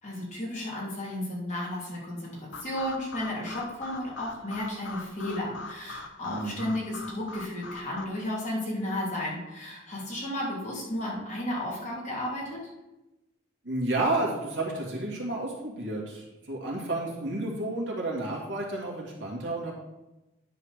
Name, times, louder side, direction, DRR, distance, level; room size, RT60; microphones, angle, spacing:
voice 1, 0.0-12.6, left 1 dB, 35° left, -5 dB, 2.8 m, -33 dB
sound 1, 2.5-8.0, left 3 dB, 70° left, 0.7 m, -42 dB
voice 2, 6.2-6.7 13.6-19.7, right 2 dB, 65° right, -3 dB, 2.4 m, -31 dB
10.0 x 4.2 x 6.5 m, 0.99 s
head